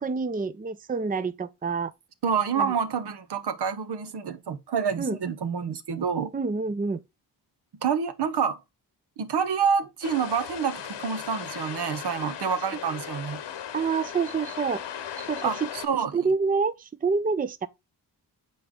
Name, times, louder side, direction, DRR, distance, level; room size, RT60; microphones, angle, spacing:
voice 1, 0.0-1.9 2.5-2.7 5.0-5.2 6.3-7.0 12.2-12.3 13.7-14.8 15.2-15.7 16.1-17.7, right 4 dB, 20° right, 0.6 m, -27 dB
voice 2, 2.2-6.3 7.8-8.6 9.2-13.4 15.4-16.2, right 6 dB, 65° right, 0.9 m, -27 dB
sound 1, 10.0-15.9, left 9 dB, 80° left, 1.1 m, -37 dB
6.7 x 3.9 x 3.5 m
supercardioid pair, 45°, 42 cm